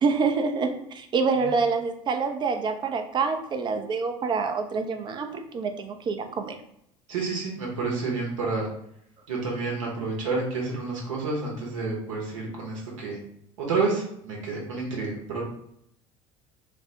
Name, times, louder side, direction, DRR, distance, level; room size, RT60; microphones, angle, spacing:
voice 1, 0.0-6.6, right 4 dB, 25° right, 6 dB, 0.4 m, -26 dB
voice 2, 7.1-8.7 9.3-13.2 13.6-15.4, right 3 dB, 65° right, -1 dB, 0.7 m, -29 dB
3.3 x 2.0 x 2.7 m, 0.73 s
figure-of-eight pair, 65°, 18 cm